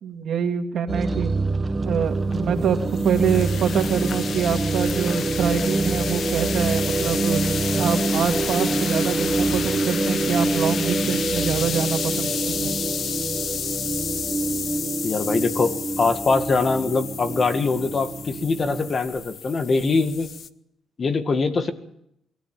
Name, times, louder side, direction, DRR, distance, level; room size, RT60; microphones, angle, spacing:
voice 1, 0.0-1.3 1.9-2.8 3.0-7.4 7.8-12.7, right 7 dB, 65° right, 5 dB, 2.3 m, -25 dB
sound 1, 0.9-19.0, right 3 dB, 30° right, 1.2 m, -26 dB
sound 2, 2.3-20.5, left 7 dB, 60° left, 0.9 m, -31 dB
voice 2, 15.0-20.3 21.0-21.7, left 4 dB, 40° left, 9 dB, 1.9 m, -23 dB
23.0 x 14.0 x 9.1 m, 0.78 s
cardioid pair, 90°, 0 cm